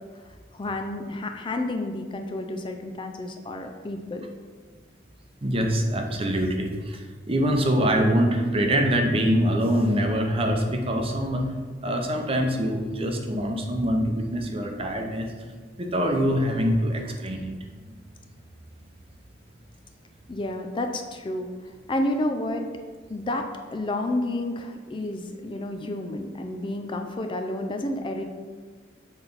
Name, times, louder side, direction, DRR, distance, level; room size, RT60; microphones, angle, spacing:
voice 1, 0.5-4.3 20.3-21.5 21.9-22.6 23.1-28.2, left 1 dB, 30° left, 5 dB, 0.4 m, -30 dB
voice 2, 5.4-11.4 11.8-15.3 15.8-17.5, equal, 30° right, 3 dB, 0.7 m, -24 dB
7.7 x 4.1 x 4.0 m, 1.5 s
head